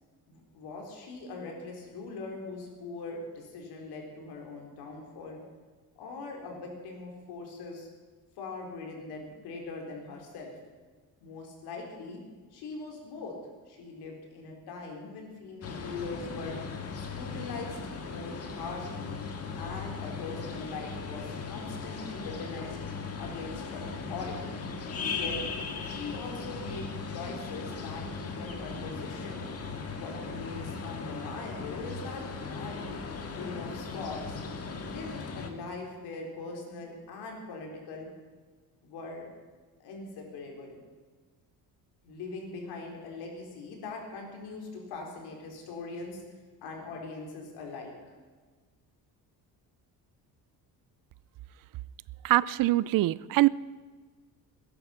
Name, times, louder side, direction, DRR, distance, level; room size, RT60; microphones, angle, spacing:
voice 1, 0.3-5.4 6.0-7.9 8.4-10.6 11.2-12.2 12.5-13.4 13.7-16.6 17.0-19.2 19.6-22.8 23.2-24.6 25.1-25.4 25.8-29.5 30.0-33.0 33.4-34.4 34.8-38.1 38.8-39.3 39.8-40.8 42.0-48.1, left 3 dB, 85° left, 1 dB, 4.3 m, -41 dB
sound 1, 15.6-35.5, left 4 dB, 40° left, 1.9 m, -38 dB
voice 2, 52.2-53.5, right 17 dB, 60° right, 20 dB, 0.5 m, -23 dB
20.5 x 11.0 x 5.8 m, 1.4 s
cardioid pair, 130°, 38 cm